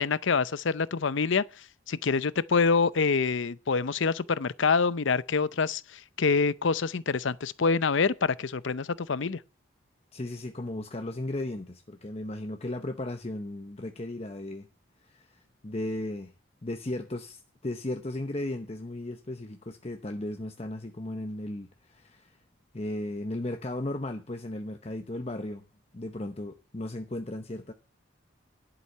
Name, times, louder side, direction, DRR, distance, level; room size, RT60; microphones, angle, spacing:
voice 1, 0.0-1.4 1.9-9.4, left 5 dB, 70° left, 0.6 m, -26 dB
voice 2, 10.1-14.7 15.0-16.3 16.6-22.4 22.7-25.7 25.9-27.7, left 1 dB, 30° left, 0.8 m, -36 dB
11.5 x 7.9 x 6.7 m
head